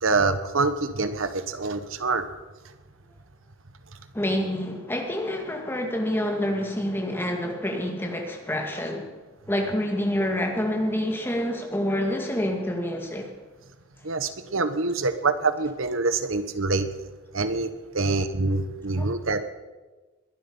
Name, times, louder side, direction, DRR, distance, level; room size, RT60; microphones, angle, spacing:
voice 1, 0.0-2.3 14.0-16.9 17.3-17.7 17.9-19.4, right 3 dB, 85° right, 11 dB, 1.2 m, -25 dB
voice 2, 4.1-9.1 9.5-13.3 19.0-19.1, left 1 dB, 10° left, 2 dB, 2.2 m, -27 dB
21.5 x 12.0 x 5.5 m, 1.2 s
head